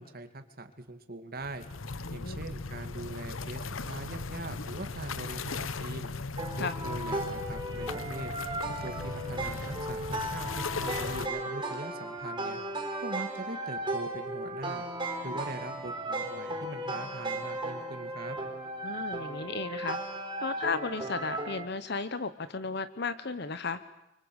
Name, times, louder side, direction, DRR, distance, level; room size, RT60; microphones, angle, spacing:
voice 1, 0.0-1.7 2.1-6.1 6.6-8.3 8.8-12.6 13.0-14.9 15.2-18.4, right 2 dB, 45° right, 7 dB, 2.6 m, -42 dB
sound 1, 1.4-11.3, left 3 dB, 85° left, 1.0 m, -38 dB
voice 2, 2.0-2.4 6.5-6.7 18.8-20.0 20.4-23.8, left 4 dB, 55° left, 12 dB, 1.0 m, -34 dB
sound 2, 6.4-21.6, right 2 dB, 25° right, 4.7 m, -36 dB
29.5 x 25.0 x 8.1 m, 0.93 s
head